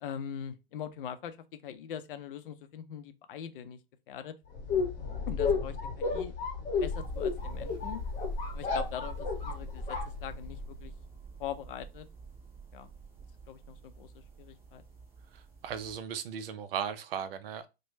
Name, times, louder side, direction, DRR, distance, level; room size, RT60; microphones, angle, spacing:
voice 1, 0.0-1.4 1.6-3.8 4.1-4.3 5.3-6.3 6.8-8.0 8.5-10.9 11.4-12.1 12.7-12.9 13.5-14.8, left 9 dB, 60° left, 0.6 m, -42 dB
sound 1, 4.5-10.8, left 4 dB, 25° left, 0.9 m, -33 dB
sound 2, 6.8-16.0, right 6 dB, 10° right, 0.3 m, -48 dB
voice 2, 15.3-17.7, right 8 dB, 65° right, 0.6 m, -37 dB
3.3 x 2.2 x 3.0 m
hypercardioid pair, 135°, 31 cm